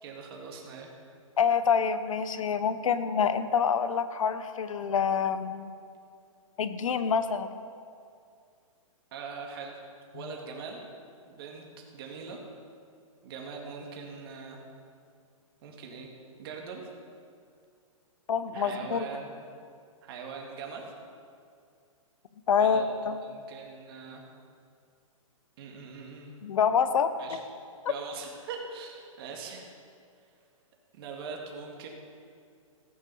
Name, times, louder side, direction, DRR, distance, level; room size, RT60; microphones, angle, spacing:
voice 1, 0.0-0.9 9.1-9.8 10.1-10.8 11.3-11.6 11.9-12.4 13.2-14.6 15.6-16.1 16.4-16.8 18.5-19.3 20.0-20.9 22.5-22.9 23.2-24.2 25.6-26.3 27.2-27.4 27.9-29.7 30.9-31.9, right 5 dB, 45° right, 0 dB, 2.1 m, -41 dB
voice 2, 1.4-5.7 6.6-7.5 18.3-19.1 22.5-23.2 26.4-27.4, left 6 dB, 70° left, 11 dB, 1.0 m, -26 dB
16.0 x 8.9 x 5.5 m, 2.3 s
hypercardioid pair, 150°, 18 cm